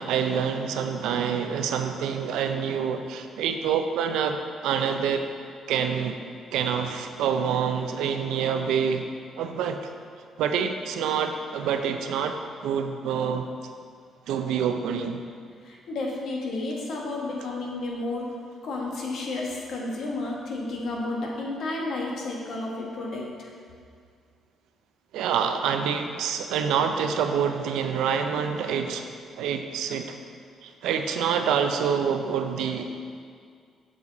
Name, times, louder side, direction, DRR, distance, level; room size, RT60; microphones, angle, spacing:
voice 1, 0.0-5.3 5.7-6.2 6.5-9.1 9.4-9.8 10.4-13.5 14.3-15.2 25.1-29.1 29.4-30.2 30.6-32.9, right 7 dB, 90° right, 6 dB, 0.6 m, -27 dB
voice 2, 15.6-18.3 18.6-23.5, left 2 dB, 70° left, -2 dB, 1.5 m, -32 dB
7.4 x 7.0 x 4.0 m, 2.1 s
cardioid pair, 90°, 0 cm